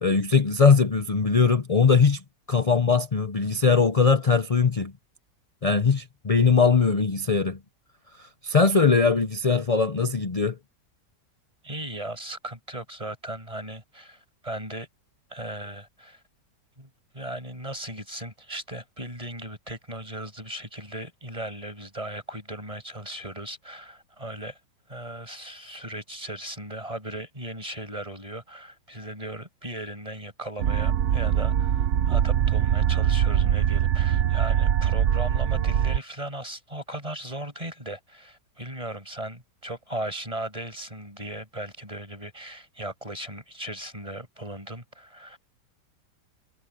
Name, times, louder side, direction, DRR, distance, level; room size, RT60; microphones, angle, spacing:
voice 1, 0.0-2.2 2.5-4.9 5.6-7.6 8.2-10.6, left 5 dB, 50° left, 0.4 m, -21 dB
voice 2, 11.6-14.9 15.3-16.2 16.8-16.9 17.1-24.6 24.9-45.4, right 1 dB, 20° right, 6.5 m, -37 dB
sound 1, 30.6-36.0, right 9 dB, 55° right, 0.9 m, -22 dB
omnidirectional pair, 1.8 m